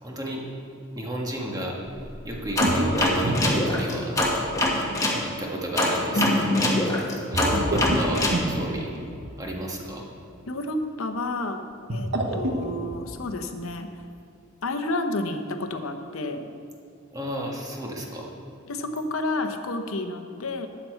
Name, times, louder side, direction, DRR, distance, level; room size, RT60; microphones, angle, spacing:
voice 1, 0.0-0.4 0.9-1.8 2.2-4.2 5.0-6.7 7.3-8.9 9.4-10.1 17.1-18.3, right 1 dB, 20° right, -1 dB, 1.6 m, -32 dB
sound 1, 2.0-4.7 7.3-9.4 11.7-13.2, right 1 dB, 55° right, 1.0 m, -29 dB
sound 2, 2.6-5.2 5.8-8.4, left 1 dB, 15° left, 1.5 m, -24 dB
voice 2, 6.1-7.1 7.5-7.9 10.5-11.6 11.9-13.9 14.6-16.5 18.7-20.7, left 2 dB, 90° left, 7 dB, 0.9 m, -30 dB
13.0 x 8.5 x 4.5 m, 2.5 s
head